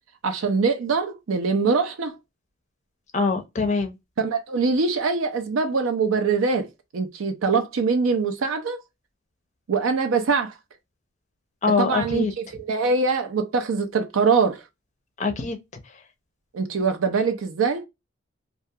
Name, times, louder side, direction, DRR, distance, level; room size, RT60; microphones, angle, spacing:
voice 1, 0.2-2.2 4.2-6.7 6.9-8.8 9.7-10.5 11.8-14.6 16.5-17.8, right 4 dB, 75° right, 0.5 m, -23 dB
voice 2, 3.1-4.0 11.6-12.3 15.2-15.6, left 4 dB, 35° left, 0.5 m, -23 dB
2.3 x 2.3 x 2.7 m
head